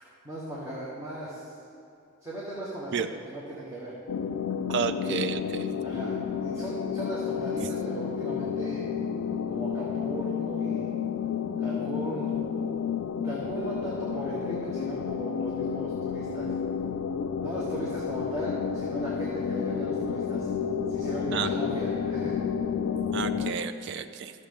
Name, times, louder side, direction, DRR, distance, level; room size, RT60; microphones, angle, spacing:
voice 1, 0.2-1.5 2.2-4.0 4.9-5.2 5.8-8.8 9.5-10.9 11.6-12.3 13.2-16.5 17.4-20.5 20.9-22.3, right 1 dB, 15° right, -7 dB, 1.1 m, -37 dB
sound 1, 4.1-23.5, left 7 dB, 85° left, 0.3 m, -31 dB
voice 2, 4.7-5.6 21.3-21.5 23.1-24.3, right 6 dB, 55° right, 9 dB, 0.3 m, -31 dB
13.5 x 6.5 x 3.6 m, 2.6 s
head